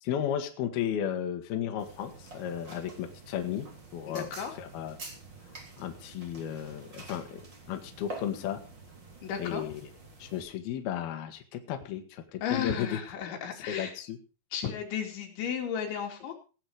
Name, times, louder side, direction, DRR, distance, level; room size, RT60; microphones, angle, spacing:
voice 1, 0.0-4.3 4.6-5.0 5.8-7.4 7.7-8.6 9.4-9.8 10.2-13.0 13.7-14.2, left 9 dB, 65° left, 5 dB, 3.3 m, -34 dB
sound 1, 1.8-10.4, right 3 dB, 25° right, 3.4 m, -48 dB
voice 2, 4.1-4.5 9.2-9.7 12.4-13.9 14.5-16.3, left 8 dB, 85° left, 2 dB, 4.9 m, -34 dB
18.5 x 8.8 x 4.9 m, 0.36 s
omnidirectional pair, 5.2 m